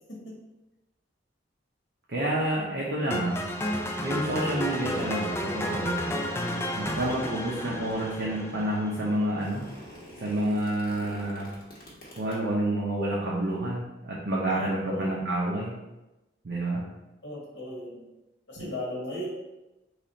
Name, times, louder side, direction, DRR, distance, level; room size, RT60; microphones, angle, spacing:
voice 1, 2.1-3.4 4.0-6.1 6.8-9.7 10.2-11.5 12.2-15.8 16.4-16.8 18.6-18.7, right 1 dB, 60° right, -5 dB, 0.7 m, -29 dB
sound 1, 3.1-9.2, equal, 15° left, 0.3 m, -32 dB
sound 2, 6.7-8.6 9.2-12.3, equal, 55° left, 1.1 m, -49 dB
voice 2, 14.5-15.2 17.2-18.1 18.5-19.3, left 1 dB, 75° left, -4 dB, 1.0 m, -37 dB
3.2 x 2.4 x 3.9 m, 1.0 s
head